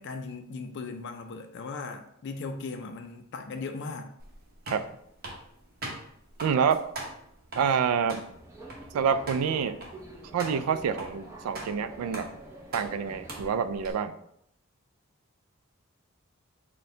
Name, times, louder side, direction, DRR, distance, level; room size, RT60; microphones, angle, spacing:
voice 1, 0.0-4.1, left 4 dB, 55° left, 5 dB, 0.4 m, -38 dB
sound 1, 4.2-13.9, right 1 dB, 45° right, 0.9 m, -43 dB
voice 2, 6.4-6.8 7.6-8.2 8.9-9.8 10.3-12.3 12.7-14.1, right 6 dB, 85° right, 15 dB, 0.3 m, -27 dB
Subway metro underground, 8.1-13.8, right 2 dB, 15° right, 0.6 m, -46 dB
4.2 x 2.2 x 3.7 m, 0.73 s
head